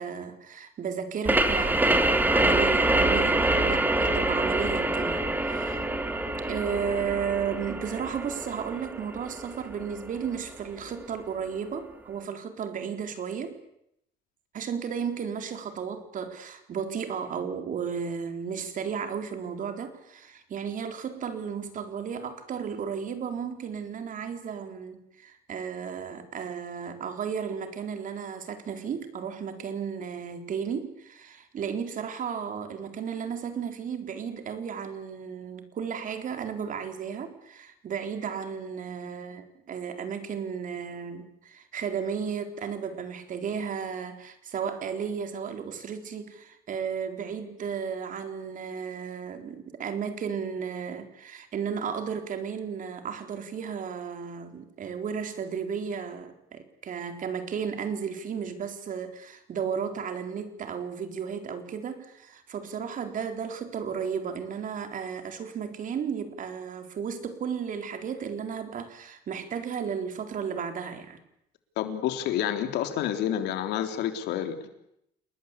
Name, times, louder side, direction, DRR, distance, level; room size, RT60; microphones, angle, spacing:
voice 1, 0.0-5.9 6.5-13.6 14.5-71.2, right 7 dB, 50° right, 7 dB, 4.1 m, -34 dB
sound 1, 1.3-10.6, right 2 dB, 10° right, 2.9 m, -26 dB
voice 2, 71.8-74.7, left 10 dB, 85° left, 7 dB, 3.6 m, -29 dB
29.0 x 20.5 x 8.4 m, 0.78 s
cardioid pair, 110°, 17 cm